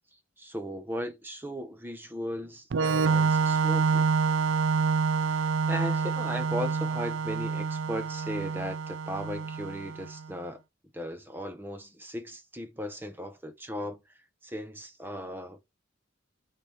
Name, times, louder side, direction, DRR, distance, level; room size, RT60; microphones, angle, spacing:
voice 1, 0.4-4.1 5.3-10.6 10.9-14.0 14.4-15.7, equal, 10° right, 0.8 m, -37 dB
Organ, 2.7-10.2, right 5 dB, 75° right, 0.4 m, -27 dB
5.5 x 4.1 x 4.7 m
head